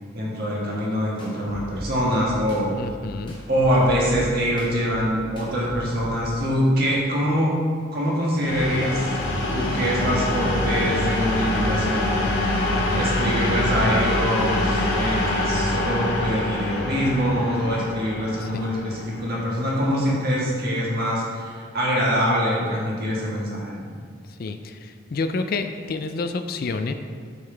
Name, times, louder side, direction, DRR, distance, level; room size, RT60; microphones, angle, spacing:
voice 1, 0.1-2.7 3.5-7.5 7.9-9.1 9.5-12.2 12.5-23.9, equal, 50° right, -4 dB, 1.6 m, -24 dB
sound 1, 1.2-6.2, equal, 25° left, 1.4 m, -37 dB
voice 2, 2.8-3.3 13.4-13.9 15.5-15.6 18.4-18.6 24.4-24.8 25.1-26.9, left 3 dB, 50° left, 8 dB, 0.4 m, -29 dB
sound 2, 8.4-20.0, left 1 dB, 70° left, 1.4 m, -25 dB
7.7 x 5.5 x 3.4 m, 2.1 s
head